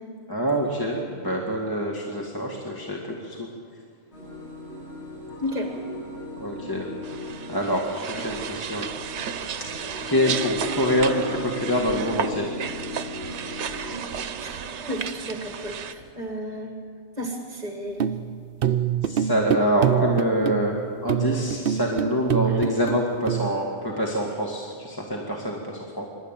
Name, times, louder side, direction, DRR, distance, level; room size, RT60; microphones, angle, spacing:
voice 1, 0.3-3.5 6.4-6.9 7.5-8.9 10.0-12.5 19.0-20.8 21.0-26.1, equal, 20° left, -2 dB, 1.9 m, -25 dB
sound 1, 4.1-16.1, left 1 dB, 70° left, 7.3 m, -38 dB
sound 2, 7.0-15.9, right 8 dB, 80° right, 1.1 m, -33 dB
voice 2, 14.9-16.7 17.2-18.1, equal, 40° right, 2 dB, 1.8 m, -32 dB
sound 3, 17.9-23.5, right 9 dB, 60° right, 0.8 m, -25 dB
25.5 x 12.0 x 9.1 m, 2.2 s
omnidirectional pair, 1.2 m